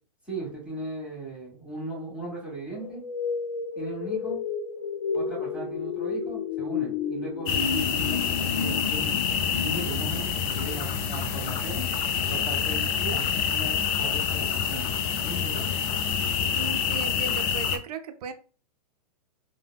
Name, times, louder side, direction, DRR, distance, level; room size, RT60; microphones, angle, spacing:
voice 1, 0.2-3.0 3.8-4.4 5.1-9.2 9.5-11.9 12.3-14.8 15.2-15.7, right 2 dB, 5° right, 1.3 m, -37 dB
sound 1, 2.7-11.7, left 6 dB, 85° left, 0.5 m, -32 dB
sound 2, 7.5-17.8, left 7 dB, 35° left, 0.4 m, -27 dB
voice 2, 16.5-18.3, right 6 dB, 70° right, 0.6 m, -37 dB
3.3 x 2.2 x 2.3 m
hypercardioid pair, 120°, 21 cm